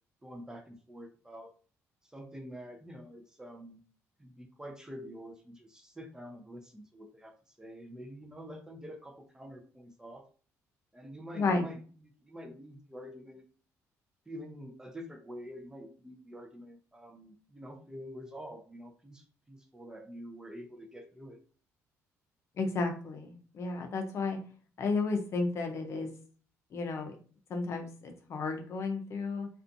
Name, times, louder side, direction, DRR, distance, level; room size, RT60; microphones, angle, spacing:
voice 1, 0.2-1.5 2.0-3.8 4.2-10.2 10.9-11.8 12.2-13.4 14.3-21.4, equal, 10° right, 4 dB, 0.5 m, -47 dB
voice 2, 11.3-11.7 22.6-24.4 24.8-26.1 26.7-27.1 27.5-29.5, left 3 dB, 50° left, 4 dB, 0.6 m, -32 dB
2.4 x 2.4 x 2.6 m, 0.41 s
cardioid pair, 95°, 6 cm